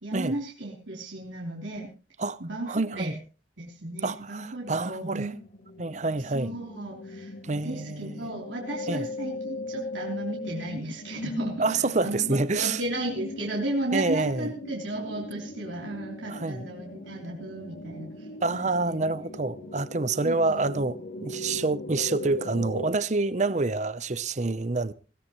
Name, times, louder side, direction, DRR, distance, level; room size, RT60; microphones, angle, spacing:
voice 1, 0.0-1.9 2.4-3.1 3.6-5.3 6.3-7.3 7.6-18.3 18.5-19.0 20.2-20.4 20.7-20.8, right 1 dB, 90° right, 3.3 m, -34 dB
voice 2, 2.7-3.1 4.0-5.3 5.8-6.6 7.4-8.3 8.9-9.1 11.6-12.8 13.9-14.5 16.3-16.7 18.4-24.9, right 3 dB, 40° right, 0.7 m, -27 dB
sound 1, 4.6-22.9, left 2 dB, 65° left, 2.1 m, -39 dB
20.5 x 16.5 x 3.0 m
head